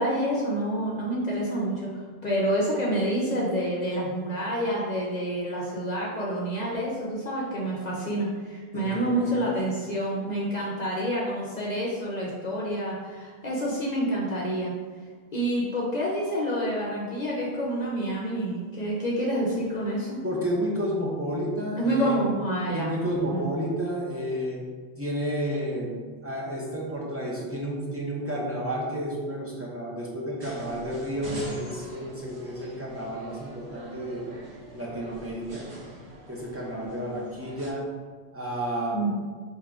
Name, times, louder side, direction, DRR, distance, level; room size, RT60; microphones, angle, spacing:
voice 1, 0.0-1.9 2.2-14.7 15.3-20.2 21.8-22.9 23.3-23.5 38.9-39.1, right 1 dB, 45° left, -5 dB, 0.7 m, -28 dB
voice 2, 8.7-9.4 20.2-22.3 22.7-24.6 25.0-26.0 26.2-34.3 34.7-35.7 36.3-37.8 38.3-39.0, equal, 15° right, -5 dB, 0.6 m, -31 dB
sound 1, 30.4-37.7, equal, 70° right, 1.4 m, -43 dB
3.7 x 2.7 x 4.6 m, 1.5 s
omnidirectional pair, 1.1 m